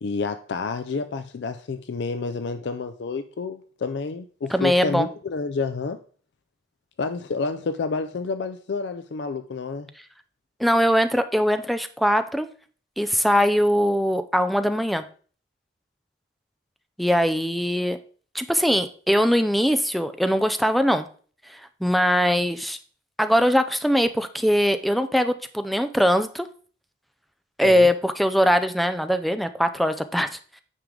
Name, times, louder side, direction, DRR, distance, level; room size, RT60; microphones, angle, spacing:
voice 1, 0.0-6.0 7.0-9.9 27.6-27.9, left 4 dB, 65° left, 10 dB, 0.4 m, -29 dB
voice 2, 4.5-5.1 10.6-12.5 13.0-15.0 17.0-18.0 18.3-21.1 21.5-22.8 23.2-26.5 27.6-30.4, equal, ahead, 10 dB, 0.4 m, -21 dB
9.1 x 5.0 x 3.7 m, 0.43 s
head